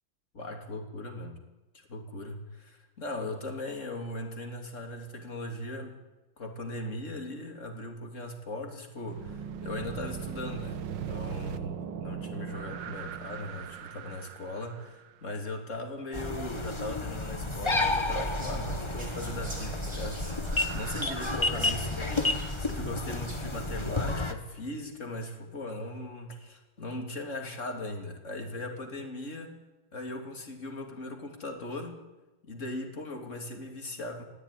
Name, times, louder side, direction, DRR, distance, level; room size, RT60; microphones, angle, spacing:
voice 1, 0.3-1.4 1.7-6.0 6.4-20.3 20.6-29.5 29.9-32.0 32.4-34.2, left 1 dB, 35° left, 3 dB, 3.3 m, -39 dB
sound 1, 9.1-15.1 17.1-21.1, right 8 dB, 65° right, 1.6 m, -40 dB
sound 2, 16.1-24.3, left 2 dB, 15° left, 1.2 m, -31 dB
Whispering, 18.3-23.7, right 1 dB, 35° right, 5.7 m, -46 dB
25.0 x 17.0 x 10.0 m, 1.1 s
omnidirectional pair, 2.3 m